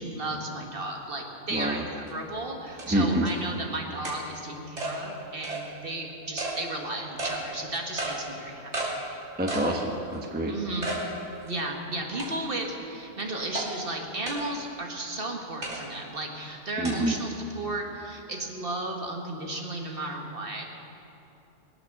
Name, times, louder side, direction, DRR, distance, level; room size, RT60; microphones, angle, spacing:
voice 1, 0.0-9.0 10.5-10.9 11.4-20.6, right 2 dB, 45° right, 1 dB, 1.7 m, -34 dB
voice 2, 1.5-1.8 2.9-3.3 9.4-10.5 16.8-17.2, right 1 dB, 10° right, 1 dB, 1.0 m, -26 dB
sound 1, 2.1-2.2 2.8-2.9 3.3-3.4 4.0-4.2 4.8-4.9 5.4-5.6 6.4-6.6 7.2-7.4 8.0-8.2 8.7-8.9 9.5-9.7 10.1-10.2 10.8-11.0 11.5-11.6 12.2-12.6 13.5-13.7 14.3-14.4 15.6-15.8 16.8-16.9, right 2 dB, 65° right, 3.2 m, -32 dB
21.5 x 8.7 x 6.5 m, 2.9 s
omnidirectional pair, 1.3 m